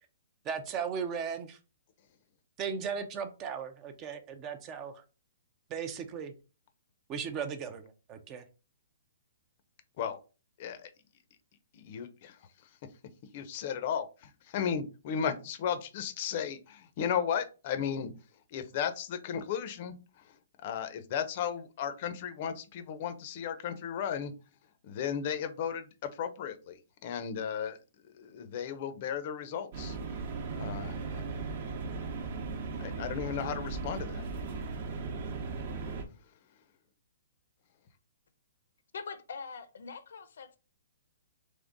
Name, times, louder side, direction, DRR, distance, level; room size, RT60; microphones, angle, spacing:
voice 1, 0.4-1.6 2.6-5.0 5.7-6.3 7.1-8.4, right 6 dB, 20° right, 9 dB, 0.5 m, -37 dB
voice 2, 10.6-10.9 11.7-12.4 13.3-18.1 18.5-19.9 20.2-20.4 20.6-24.3 24.8-27.8 28.1-30.0 30.6-31.2 32.8-34.2, left 8 dB, 40° left, 10 dB, 0.6 m, -35 dB
sound 1, 29.7-36.0, right 4 dB, 45° right, 0.9 m, -37 dB
voice 3, 38.9-40.6, left 5 dB, 75° left, 11 dB, 0.7 m, -43 dB
3.6 x 3.4 x 3.9 m, 0.33 s
hypercardioid pair, 165°, 0 cm